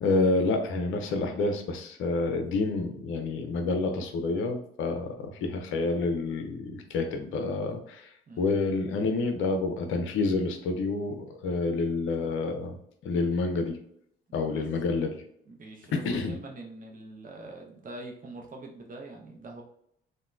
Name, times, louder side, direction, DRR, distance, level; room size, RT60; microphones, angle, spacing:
voice 1, 0.0-12.8 13.0-13.8 14.3-15.2 16.0-16.4, left 3 dB, 45° left, 5 dB, 0.5 m, -28 dB
voice 2, 15.5-19.6, right 2 dB, 30° right, 0 dB, 0.7 m, -44 dB
2.9 x 2.2 x 2.3 m, 0.70 s
figure-of-eight pair, 45°, 29 cm